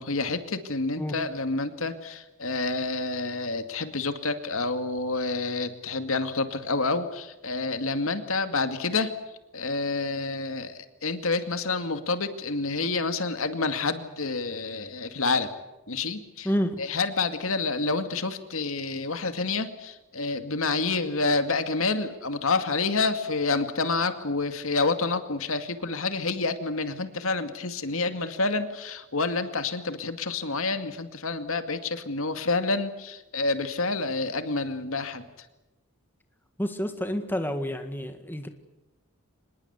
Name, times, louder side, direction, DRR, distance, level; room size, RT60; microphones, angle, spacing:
voice 1, 0.0-9.1 9.5-15.5 15.9-16.5 16.8-35.2, left 3 dB, 70° left, 8 dB, 2.3 m, -28 dB
voice 2, 16.4-16.8 36.6-38.5, equal, 10° left, 6 dB, 1.8 m, -29 dB
25.5 x 21.0 x 8.2 m, 1.0 s
head